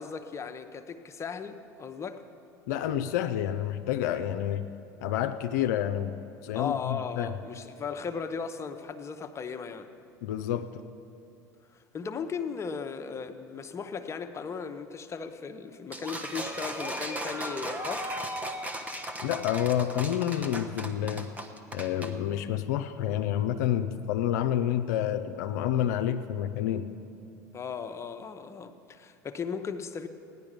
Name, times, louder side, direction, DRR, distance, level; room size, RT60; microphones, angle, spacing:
voice 1, 0.0-2.2 6.5-9.9 11.7-18.2 27.5-30.1, left 6 dB, 30° left, 8 dB, 0.8 m, -37 dB
voice 2, 2.7-4.6 5.0-7.3 10.2-10.8 19.2-21.3 21.7-26.9, left 10 dB, 75° left, 7 dB, 0.5 m, -29 dB
sound 1, 15.9-22.1, right 1 dB, 15° right, 1.1 m, -36 dB
16.0 x 11.0 x 5.2 m, 2.6 s
hypercardioid pair, 85°, 9 cm